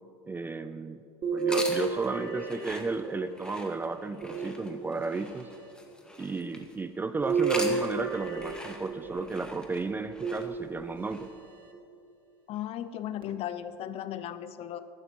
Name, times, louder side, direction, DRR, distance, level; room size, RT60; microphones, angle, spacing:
voice 1, 0.3-1.0 1.3-5.5 6.2-11.3, right 3 dB, 15° right, 11 dB, 0.4 m, -33 dB
sound 1, 1.2-3.5 4.2-5.2 7.2-9.3 10.2-11.1 11.7-11.8 13.2-13.3, right 4 dB, 35° right, 1.5 m, -32 dB
sound 2, 1.4-6.7 7.3-11.3, left 1 dB, 5° left, 1.3 m, -42 dB
voice 2, 12.5-14.8, left 11 dB, 45° left, 13 dB, 0.6 m, -36 dB
16.0 x 11.0 x 3.0 m, 2.5 s
hypercardioid pair, 95°, 15 cm